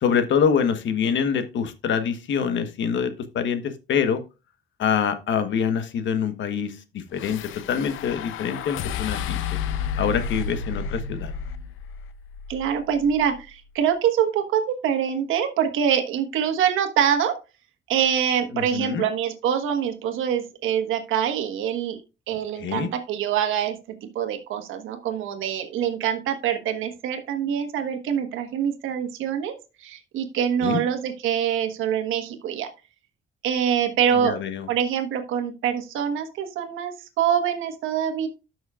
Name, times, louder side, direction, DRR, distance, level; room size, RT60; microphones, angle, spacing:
voice 1, 0.0-4.2 4.8-9.6 10.0-11.3 18.5-19.0 22.6-22.9 30.6-30.8 34.1-34.7, left 7 dB, 70° left, 10 dB, 1.2 m, -25 dB
sound 1, 7.2-13.5, left 6 dB, 90° left, 0.7 m, -32 dB
voice 2, 12.5-17.4 17.9-22.0 22.3-23.8 24.1-32.7 33.4-34.4 34.7-38.3, right 8 dB, 85° right, 6 dB, 1.4 m, -25 dB
12.5 x 6.2 x 2.4 m, 0.30 s
cardioid pair, 90°, 20 cm